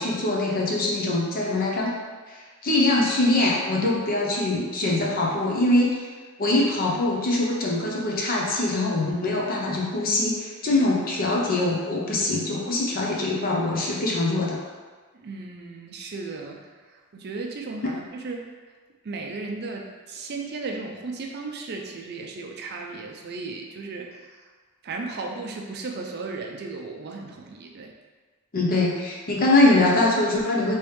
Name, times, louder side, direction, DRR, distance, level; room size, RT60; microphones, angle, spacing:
voice 1, 0.0-1.9 2.3-6.1 6.4-14.6 17.8-17.9 28.5-30.7, left 2 dB, 40° left, -3 dB, 0.7 m, -23 dB
voice 2, 3.8-4.2 15.1-18.5 19.0-24.5 24.8-27.9, right 3 dB, 45° right, 1 dB, 0.4 m, -35 dB
3.2 x 3.0 x 3.2 m, 1.4 s
head